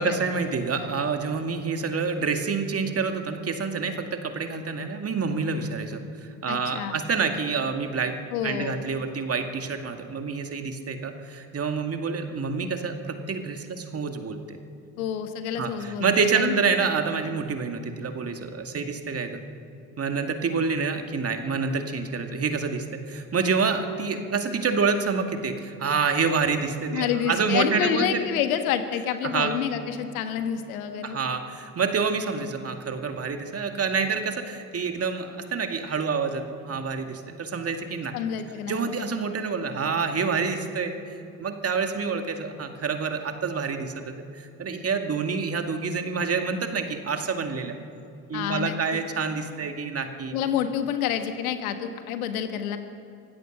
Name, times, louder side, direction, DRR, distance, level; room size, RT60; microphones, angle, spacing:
voice 1, 0.0-8.2 8.4-14.6 15.5-19.4 20.0-28.2 29.2-29.5 31.0-38.1 38.7-47.8 48.3-50.4, right 5 dB, 30° right, 6 dB, 2.2 m, -27 dB
voice 2, 6.5-7.0 8.3-8.8 15.0-16.5 26.9-31.2 38.1-39.0 48.3-49.0 50.3-52.8, left 9 dB, 70° left, 8 dB, 1.6 m, -28 dB
25.0 x 16.0 x 6.6 m, 2.6 s
figure-of-eight pair, 60°, 44 cm